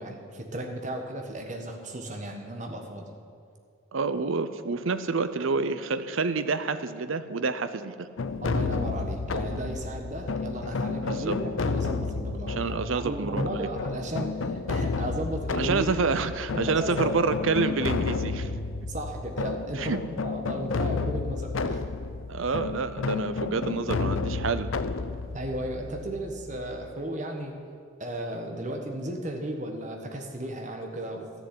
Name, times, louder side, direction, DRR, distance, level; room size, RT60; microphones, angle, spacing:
voice 1, 0.0-3.1 8.4-15.9 16.5-17.2 18.9-21.9 23.5-23.7 25.3-27.6 28.0-31.3, right 1 dB, 35° right, 3 dB, 1.4 m, -35 dB
voice 2, 3.9-8.1 11.1-11.4 12.5-13.7 15.6-18.5 19.8-20.0 22.3-24.7, right 4 dB, 75° right, 12 dB, 0.7 m, -28 dB
sound 1, 8.2-26.9, left 4 dB, 75° left, 0.6 m, -31 dB
12.0 x 7.1 x 9.6 m, 2.3 s
head